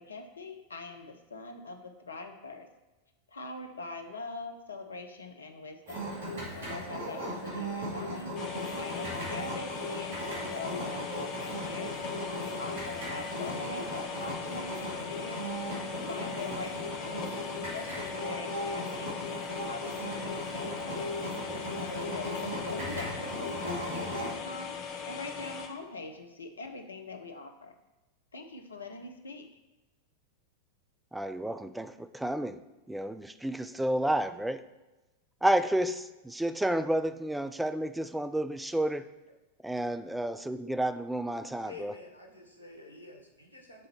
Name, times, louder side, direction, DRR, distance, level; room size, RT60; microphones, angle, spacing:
voice 1, 0.0-2.7 3.3-6.1 6.5-8.3 8.8-12.0 12.4-21.2 21.7-27.7 28.3-29.5, left 3 dB, 75° left, 6 dB, 0.7 m, -43 dB
sound 1, 5.9-24.3, equal, 60° right, 2.4 m, -37 dB
sound 2, 8.4-25.7, left 6 dB, 40° left, 0.9 m, -40 dB
voice 2, 31.1-32.6 32.9-34.6 35.4-39.1 39.6-41.9, right 1 dB, 5° right, 10 dB, 0.3 m, -30 dB
voice 3, 41.6-43.9, left 3 dB, 85° right, 1 dB, 1.1 m, -49 dB
7.6 x 3.8 x 4.3 m, 1.1 s
figure-of-eight pair, 90°, 0 cm